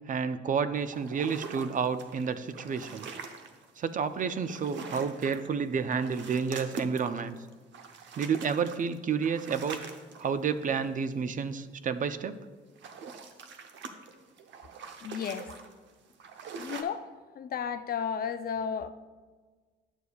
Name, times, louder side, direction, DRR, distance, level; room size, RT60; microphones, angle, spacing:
voice 1, 0.1-3.1 3.8-7.4 8.2-9.8 10.2-12.4, right 6 dB, 40° right, 11 dB, 0.4 m, -30 dB
sound 1, 0.9-3.7 4.2-5.5 5.8-10.9 12.5-16.8, right 5 dB, 65° right, 0.8 m, -43 dB
voice 2, 15.0-15.5 16.5-17.1 17.3-18.9, left 7 dB, 50° left, 11 dB, 0.4 m, -33 dB
11.0 x 6.7 x 2.3 m, 1.4 s
cardioid pair, 90°, 20 cm